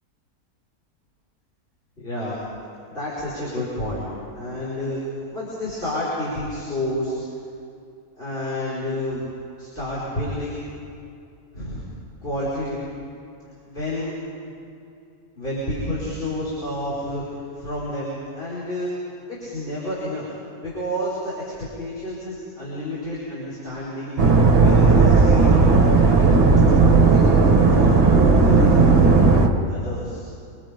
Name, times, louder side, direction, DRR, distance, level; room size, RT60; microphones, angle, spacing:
voice 1, 2.0-2.4 2.9-4.1 4.4-7.1 8.2-9.2 9.6-10.6 11.5-11.8 12.2-12.8 13.6-14.1 15.3-18.9 19.3-20.2 20.6-24.1 24.5-26.3 26.9-29.1 29.7-30.2, left 1 dB, 35° left, -8 dB, 5.2 m, -30 dB
sound 1, 24.2-29.5, right 4 dB, 40° right, 1.7 m, -15 dB
26.5 x 26.0 x 5.2 m, 2.5 s
omnidirectional pair, 1.6 m